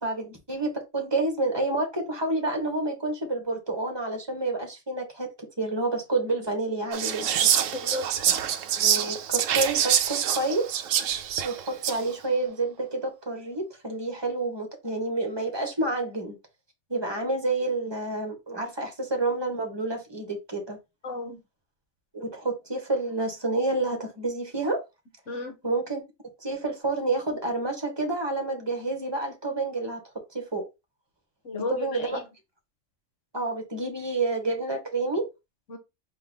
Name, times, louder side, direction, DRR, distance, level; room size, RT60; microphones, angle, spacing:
voice 1, 0.0-5.3 5.6-7.5 8.7-10.7 11.4-16.3 16.9-20.8 22.1-24.8 25.6-26.0 26.4-30.0 30.3-30.6 31.5-32.2 33.3-35.2, right 2 dB, 20° right, 1.5 m, -29 dB
Whispering, 6.9-12.1, right 9 dB, 80° right, 1.0 m, -25 dB
voice 2, 7.7-8.1 21.0-21.4 25.3-25.5 31.4-32.2 35.7-35.8, left 2 dB, 70° left, 1.5 m, -33 dB
4.5 x 3.1 x 3.7 m
omnidirectional pair, 1.3 m